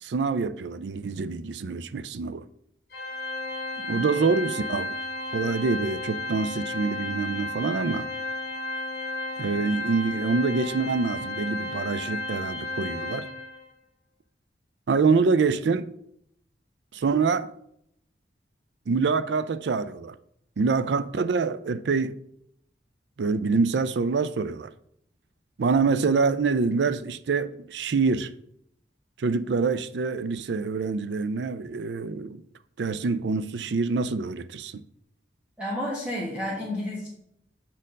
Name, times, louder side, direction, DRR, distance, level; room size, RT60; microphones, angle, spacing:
voice 1, 0.0-2.4 3.9-4.9 5.3-8.1 9.4-13.2 14.9-15.9 16.9-17.5 18.9-20.2 20.6-22.2 23.2-24.7 25.6-28.3 29.2-32.4 32.8-34.8, right 4 dB, 80° right, 0.4 m, -25 dB
Organ, 2.9-13.7, left 2 dB, 60° left, 1.7 m, -33 dB
voice 2, 35.6-37.1, left 1 dB, 5° right, 1.4 m, -31 dB
7.3 x 4.5 x 5.2 m
head